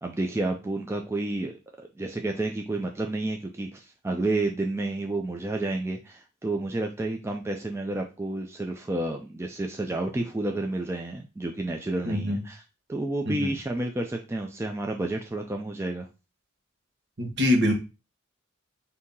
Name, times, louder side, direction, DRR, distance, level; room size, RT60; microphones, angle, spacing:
voice 1, 0.0-12.6 12.9-16.1, right 2 dB, 15° right, 3 dB, 0.3 m, -30 dB
voice 2, 12.0-12.4 13.2-13.5 17.2-17.7, left 1 dB, 55° right, 2 dB, 1.1 m, -24 dB
4.2 x 2.7 x 3.7 m, 0.29 s
head